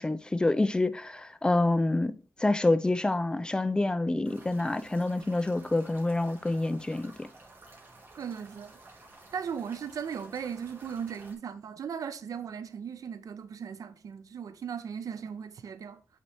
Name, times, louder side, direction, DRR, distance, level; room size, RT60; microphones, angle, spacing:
voice 1, 0.0-2.1 2.4-7.3, left 2 dB, 15° left, 0.4 m, -27 dB
sound 1, 4.2-11.3, right 2 dB, 40° right, 1.8 m, -53 dB
voice 2, 8.2-8.8 9.3-16.0, right 7 dB, 80° right, 0.6 m, -37 dB
8.4 x 4.1 x 3.4 m
wide cardioid pair, 155°, 6 cm